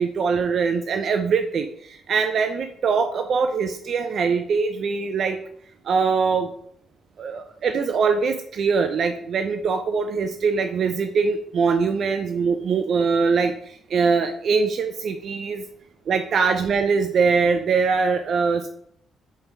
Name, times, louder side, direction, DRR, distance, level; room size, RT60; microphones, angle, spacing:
voice 1, 0.0-5.4 5.8-6.5 7.2-15.6 16.1-18.7, right 5 dB, 60° right, 8 dB, 0.6 m, -22 dB
5.7 x 4.6 x 5.4 m, 0.65 s
cardioid pair, 90°, 0 cm